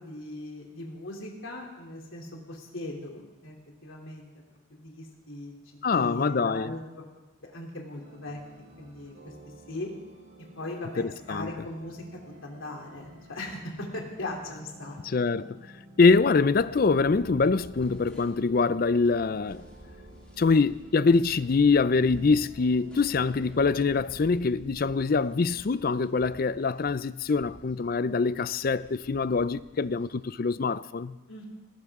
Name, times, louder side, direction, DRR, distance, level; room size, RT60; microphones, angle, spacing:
voice 1, 0.0-3.6 3.8-4.3 4.7-7.0 7.5-8.4 8.8-9.1 9.7-9.9 10.6-12.0 12.4-15.0 31.3-31.5, left 2 dB, 75° left, 3.2 m, -39 dB
voice 2, 5.8-6.7 11.0-11.5 15.0-15.6 16.0-19.6 20.4-31.2, left 4 dB, 45° left, 0.4 m, -24 dB
sound 1, 7.9-24.2, right 1 dB, 80° right, 4.2 m, -52 dB
sound 2, 16.0-30.2, equal, 5° left, 3.4 m, -51 dB
19.0 x 16.0 x 3.7 m
head